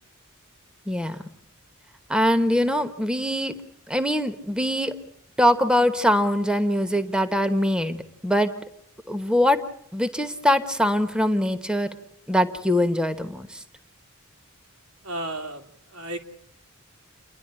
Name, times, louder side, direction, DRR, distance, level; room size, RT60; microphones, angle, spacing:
voice 1, 0.9-1.2 2.1-3.5 3.9-4.9 5.4-8.5 9.1-9.6 9.9-11.9 12.3-13.6, equal, 5° right, 9 dB, 1.1 m, -22 dB
voice 2, 15.0-16.2, right 1 dB, 90° right, 4 dB, 2.5 m, -33 dB
29.0 x 11.5 x 9.9 m, 0.73 s
head